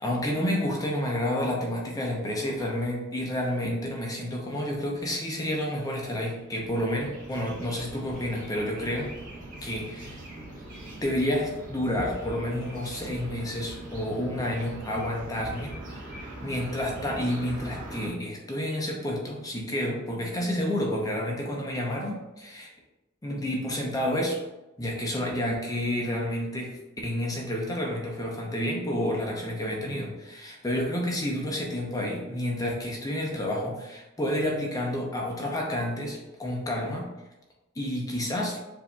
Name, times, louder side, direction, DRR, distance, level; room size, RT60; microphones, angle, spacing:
voice 1, 0.0-9.2 9.6-10.2 11.0-15.8 16.4-22.7 23.2-24.4 24.8-26.8 27.0-37.1 37.8-38.6, left 1 dB, 15° left, -1 dB, 0.6 m, -30 dB
sound 1, 5.5-18.1, right 1 dB, 40° right, 1.2 m, -42 dB
7.1 x 2.7 x 2.2 m, 1.0 s
head